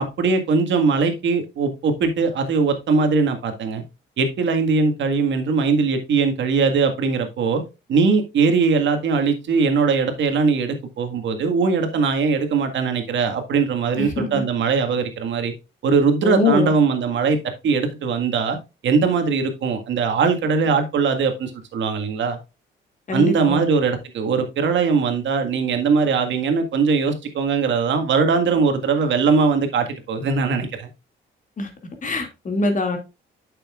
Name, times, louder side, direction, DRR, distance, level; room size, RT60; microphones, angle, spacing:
voice 1, 0.0-3.8 4.2-7.6 7.9-15.5 15.8-17.4 17.6-18.6 18.8-22.4 23.1-30.9, right 5 dB, 70° right, 1.8 m, -20 dB
voice 2, 14.0-14.4 16.2-16.7 23.1-23.6 31.6-31.7 32.0-33.0, left 3 dB, 40° left, 2.4 m, -23 dB
8.9 x 6.9 x 2.4 m
cardioid pair, 90°, 20 cm